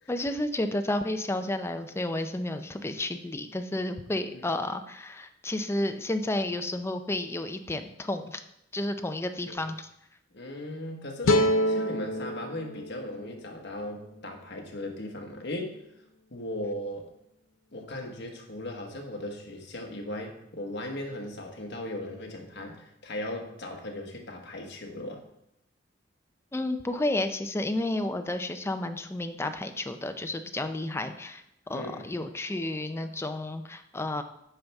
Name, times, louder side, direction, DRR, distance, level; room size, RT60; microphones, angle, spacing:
voice 1, 0.1-8.4 8.7-9.9 26.5-34.2, left 1 dB, 15° left, 8 dB, 0.5 m, -31 dB
voice 2, 10.3-15.8 16.3-17.1 17.7-25.2 31.7-32.1, left 1 dB, 60° left, 2 dB, 1.4 m, -38 dB
sound 1, 11.2-14.4, left 1 dB, 85° left, 0.6 m, -28 dB
8.9 x 5.5 x 3.5 m, 0.80 s
head